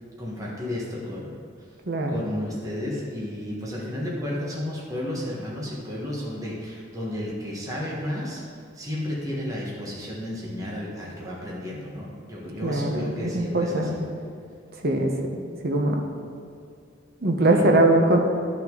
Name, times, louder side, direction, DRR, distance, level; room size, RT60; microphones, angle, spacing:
voice 1, 0.2-1.3 2.1-8.4 8.7-13.9 17.4-17.7, left 1 dB, 15° right, -5 dB, 1.4 m, -32 dB
voice 2, 1.9-2.2 12.6-14.1 14.8-15.1 15.6-16.0 17.2-18.2, right 1 dB, 50° right, 2 dB, 1.0 m, -21 dB
11.5 x 6.0 x 3.9 m, 2.4 s
head